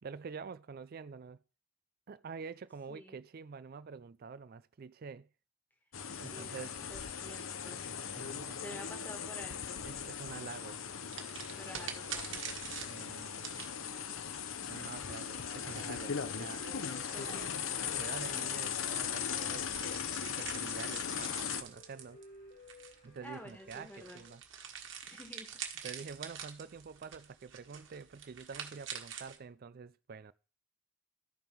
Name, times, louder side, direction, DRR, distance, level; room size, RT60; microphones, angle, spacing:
voice 1, 0.0-1.4 2.1-5.3 6.2-6.7 8.1-8.6 9.8-10.9 12.9-13.6 14.7-16.7 17.8-19.7 20.2-22.2 23.0-24.4 25.8-30.3, right 5 dB, 50° right, 0.4 m, -47 dB
voice 2, 2.9-3.2 6.3-7.8 8.5-9.8 11.6-12.4 17.1-17.5 23.2-24.2 25.0-25.5, equal, 10° left, 1.6 m, -50 dB
sound 1, 5.9-21.6, left 7 dB, 80° left, 0.7 m, -39 dB
sound 2, 11.1-17.7 18.3-29.4, right 8 dB, 65° right, 1.5 m, -47 dB
sound 3, 16.0-24.3, left 1 dB, 60° left, 2.7 m, -57 dB
13.0 x 5.4 x 4.6 m
head